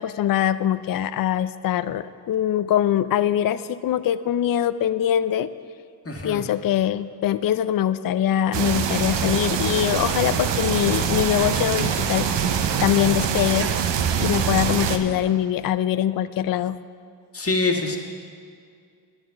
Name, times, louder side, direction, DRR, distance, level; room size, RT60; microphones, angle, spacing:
voice 1, 0.0-5.5 6.2-13.7 14.2-16.8, left 11 dB, 50° left, 14 dB, 0.5 m, -23 dB
voice 2, 6.0-6.4 17.3-18.0, left 3 dB, 30° left, 2 dB, 1.5 m, -24 dB
sound 1, 8.5-15.0, right 7 dB, 75° right, 0.8 m, -24 dB
10.5 x 9.0 x 5.7 m, 2.3 s
cardioid pair, 60°, 44 cm